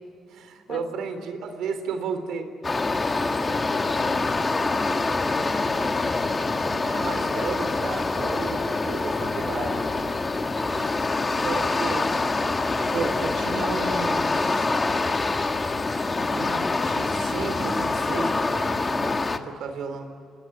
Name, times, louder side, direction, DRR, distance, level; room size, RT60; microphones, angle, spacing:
voice 1, 0.3-2.5 6.8-10.0 10.7-12.2 12.8-14.7 16.0-20.1, right 5 dB, 80° right, 8 dB, 3.7 m, -34 dB
sound 1, 2.6-19.4, left 3 dB, 25° left, 1.6 m, -25 dB
voice 2, 3.5-5.7, left 5 dB, 55° left, 5 dB, 2.4 m, -40 dB
27.5 x 20.0 x 9.3 m, 2.6 s
cardioid pair, 90°, 0 cm